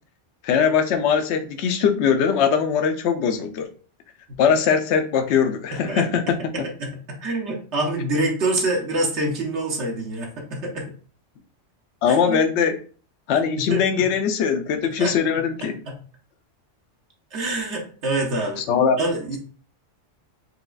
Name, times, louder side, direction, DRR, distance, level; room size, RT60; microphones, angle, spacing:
voice 1, 0.4-3.7 4.4-6.6 12.0-12.8 13.3-15.8 18.6-19.0, left 7 dB, 70° left, 7 dB, 0.8 m, -21 dB
voice 2, 5.7-6.0 6.8-10.9 12.1-12.4 13.6-14.1 14.8-15.2 15.6-15.9 17.3-18.6 19.0-19.4, right 2 dB, 70° right, -1 dB, 1.3 m, -26 dB
4.7 x 2.9 x 2.4 m, 0.40 s
omnidirectional pair, 1.3 m